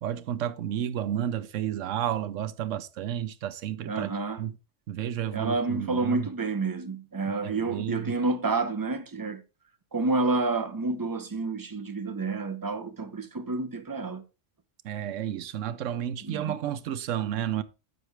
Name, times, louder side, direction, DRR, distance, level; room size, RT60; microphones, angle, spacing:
voice 1, 0.0-4.1 4.4-4.6 4.9-6.3 7.3-8.1 14.8-17.6, right 10 dB, 90° right, 1.0 m, -31 dB
voice 2, 3.9-4.4 5.3-9.4 9.9-14.2 16.2-16.5, right 3 dB, 20° right, 0.6 m, -29 dB
9.5 x 7.1 x 3.4 m
omnidirectional pair, 1.3 m